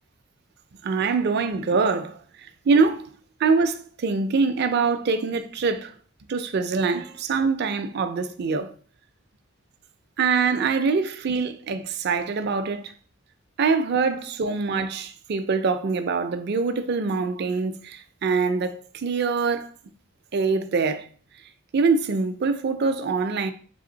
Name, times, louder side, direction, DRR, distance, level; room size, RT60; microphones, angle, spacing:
voice 1, 0.8-2.2 2.7-3.1 3.4-5.9 6.3-8.7 10.2-12.9 13.6-19.7 20.3-21.1 21.7-23.5, right 4 dB, 50° right, 0.4 m, -24 dB
3.7 x 3.5 x 3.8 m
head